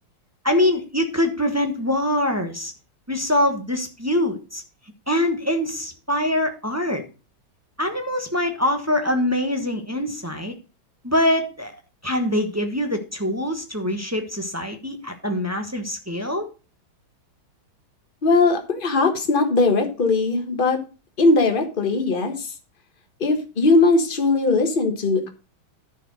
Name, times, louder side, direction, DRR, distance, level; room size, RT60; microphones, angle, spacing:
voice 1, 0.4-2.7 3.1-4.6 5.1-7.0 7.8-10.5 11.0-11.7 12.0-16.5, left 1 dB, 15° right, 4 dB, 0.6 m, -24 dB
voice 2, 18.2-20.8 21.2-22.5 23.2-25.3, left 3 dB, 30° left, 5 dB, 1.3 m, -19 dB
11.0 x 4.6 x 6.2 m, 0.33 s
omnidirectional pair, 2.2 m